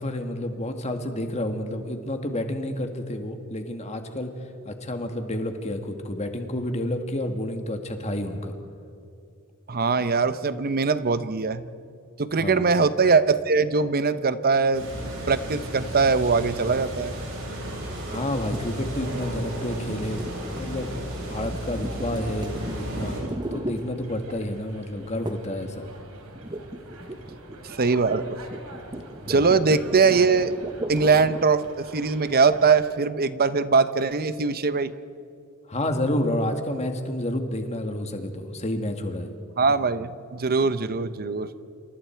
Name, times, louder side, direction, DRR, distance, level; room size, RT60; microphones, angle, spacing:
voice 1, 0.0-4.3 4.7-8.5 12.3-12.7 18.1-20.2 20.6-20.9 21.3-23.2 23.5-25.9 29.2-29.5 35.7-39.3, left 1 dB, 30° left, 5 dB, 1.9 m, -30 dB
voice 2, 9.7-11.6 12.2-14.9 15.3-17.1 27.6-28.4 29.3-30.5 30.9-34.9 39.6-41.5, right 4 dB, 45° right, 13 dB, 0.8 m, -22 dB
sound 1, 14.7-23.2, right 1 dB, 60° right, 7.6 m, -34 dB
sound 2, 15.6-32.9, right 2 dB, 85° right, 3.3 m, -46 dB
sound 3, 18.1-24.5 25.3-25.6 25.9-31.6, right 1 dB, 20° right, 1.0 m, -38 dB
28.0 x 28.0 x 4.6 m, 2.5 s
head